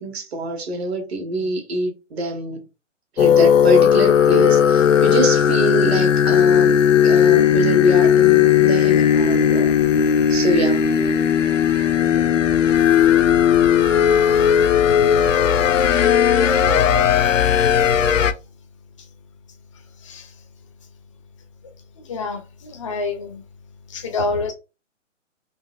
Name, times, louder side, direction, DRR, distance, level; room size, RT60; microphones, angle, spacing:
voice 1, 0.0-2.6 3.1-6.8 7.0-9.7 10.3-10.9, right 1 dB, 55° right, 1.1 m, -24 dB
sound 1, 3.2-18.3, left 8 dB, 80° left, 0.5 m, -16 dB
voice 2, 22.1-23.4 23.9-24.5, left 3 dB, 25° left, 0.4 m, -27 dB
3.9 x 2.5 x 2.4 m
figure-of-eight pair, 140°, 37 cm